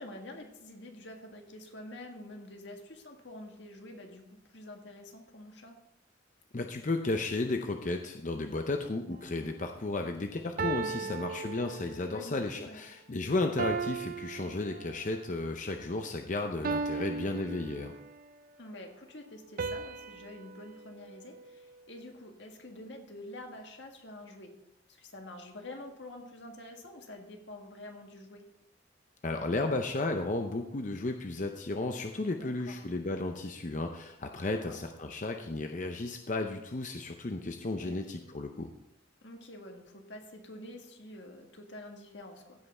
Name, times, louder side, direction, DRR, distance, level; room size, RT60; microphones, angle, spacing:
voice 1, 0.0-5.8 10.7-11.2 12.1-12.8 16.9-17.3 18.6-24.5 24.9-28.4 32.4-32.8 34.3-34.7 37.8-38.1 39.2-42.7, left 1 dB, 70° left, 2 dB, 1.8 m, -47 dB
voice 2, 6.5-17.9 29.2-38.7, left 2 dB, 40° left, 5 dB, 0.6 m, -34 dB
sound 1, 9.1-9.4 10.6-12.2 13.6-15.2 16.6-18.3 19.6-22.0, right 4 dB, 50° right, 0.5 m, -37 dB
16.0 x 5.6 x 4.3 m, 0.84 s
head